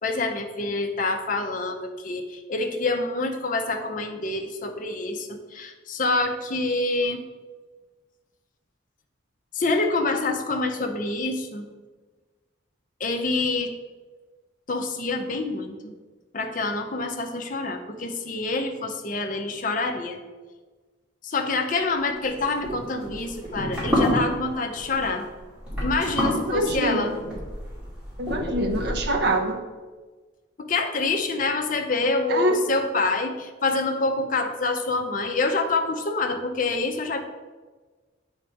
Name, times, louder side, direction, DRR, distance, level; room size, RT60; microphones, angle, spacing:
voice 1, 0.0-7.2 9.5-11.7 13.0-13.7 14.7-15.9 16.3-20.2 21.2-25.3 25.8-27.1 30.6-37.2, left 3 dB, 45° left, 5 dB, 0.6 m, -26 dB
sound 1, 22.3-29.3, left 1 dB, 5° right, 2.1 m, -28 dB
voice 2, 26.5-27.2 28.2-29.6 32.3-32.6, right 1 dB, 55° right, 3 dB, 0.7 m, -24 dB
7.3 x 3.6 x 4.5 m, 1.3 s
head